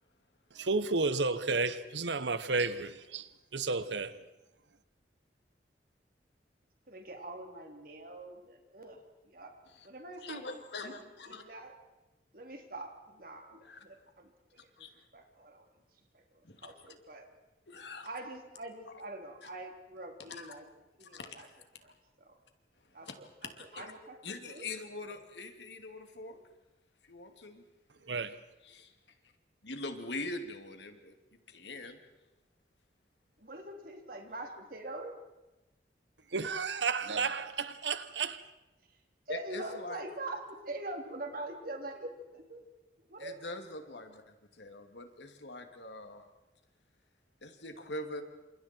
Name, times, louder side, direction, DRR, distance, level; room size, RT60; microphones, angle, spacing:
voice 1, 0.5-4.1 28.1-28.3 36.3-38.4, right 4 dB, 90° right, 1.2 m, -32 dB
voice 2, 6.9-9.0 9.3-9.5 9.8-10.4 10.8-11.7 12.3-14.3 14.6-14.7 15.1-15.7 16.1-16.2 16.6-17.3 18.0-20.7 21.0-21.5 21.8-21.9 22.2-22.3 22.9-23.3 23.7-24.2 24.5-24.7 33.4-35.1 39.3-42.6 43.1-43.4, right 2 dB, 55° right, 3.4 m, -44 dB
voice 3, 10.2-11.4 13.6-13.8 14.8-15.0 16.4-16.7 17.7-18.1 18.9-19.0 19.4-19.5 20.3-20.5 21.0-21.5 23.0-23.2 23.4-23.9 24.2-26.4 27.0-27.6 28.6-28.9 29.6-31.2 31.5-32.0 37.0-37.4 39.3-40.0 43.2-46.3 47.4-48.2, left 2 dB, 80° left, 2.7 m, -43 dB
29.0 x 27.5 x 4.6 m
head